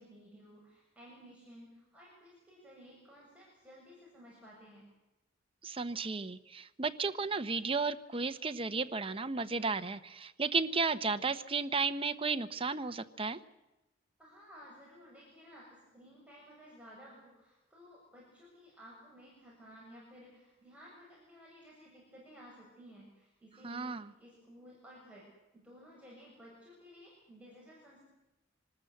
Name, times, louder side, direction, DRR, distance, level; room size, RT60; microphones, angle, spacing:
voice 1, 0.0-4.9 14.2-23.9 24.2-25.3 25.5-28.0, equal, 5° right, -5 dB, 7.4 m, -55 dB
voice 2, 5.6-13.4 23.6-24.1, right 4 dB, 30° right, 8 dB, 1.0 m, -34 dB
25.5 x 20.0 x 8.0 m, 0.99 s
head